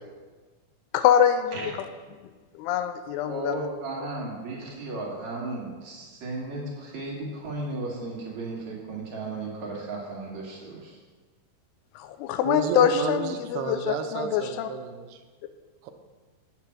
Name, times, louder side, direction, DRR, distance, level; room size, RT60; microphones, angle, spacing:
voice 1, 0.9-1.7 2.6-3.5 12.0-14.7, left 9 dB, 90° left, 9 dB, 2.7 m, -24 dB
voice 2, 3.2-11.0, right 2 dB, 50° right, -3 dB, 2.8 m, -35 dB
voice 3, 12.4-15.2 15.8-15.9, right 6 dB, 80° right, 7 dB, 2.7 m, -31 dB
8.8 x 7.6 x 6.0 m, 1.4 s
omnidirectional pair, 4.6 m